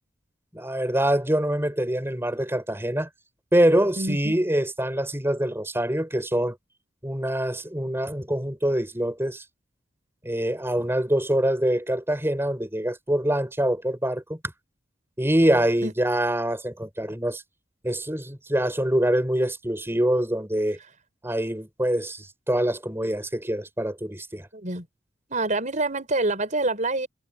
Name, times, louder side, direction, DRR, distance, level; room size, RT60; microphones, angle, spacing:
voice 1, 0.5-3.1 3.5-6.6 7.0-9.4 10.2-14.4 15.2-17.4 17.8-20.8 21.2-24.5, right 1 dB, 15° right, 5.4 m, -25 dB
voice 2, 4.0-4.3 15.8-15.9 24.5-24.9 25.3-27.1, right 2 dB, 40° right, 4.8 m, -26 dB
head